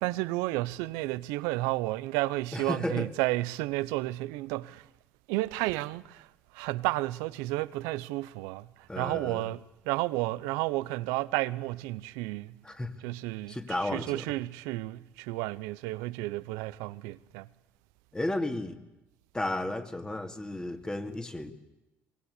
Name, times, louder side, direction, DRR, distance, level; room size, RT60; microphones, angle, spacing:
voice 1, 0.0-4.9 5.3-6.3 6.5-8.7 9.0-12.6 13.0-13.6 13.9-17.5, right 19 dB, 90° right, 0.7 m, -32 dB
voice 2, 2.5-3.1 8.9-9.5 12.6-13.0 13.5-14.2 18.1-18.8 19.3-21.5, left 1 dB, 15° left, 2.4 m, -33 dB
24.5 x 21.0 x 8.3 m
supercardioid pair, 80°, 5 cm